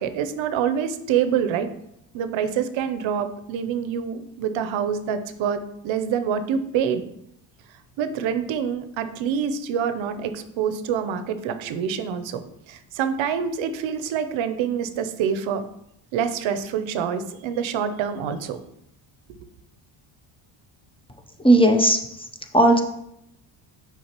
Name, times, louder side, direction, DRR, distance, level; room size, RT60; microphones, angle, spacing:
voice 1, 0.0-1.7 2.1-7.0 8.0-15.6 16.1-18.6, right 8 dB, 65° right, 10 dB, 0.7 m, -26 dB
voice 2, 21.4-22.3 22.5-22.8, right 1 dB, 10° left, 4 dB, 0.6 m, -16 dB
6.4 x 5.0 x 2.9 m, 0.78 s
cardioid pair, 85°, 50 cm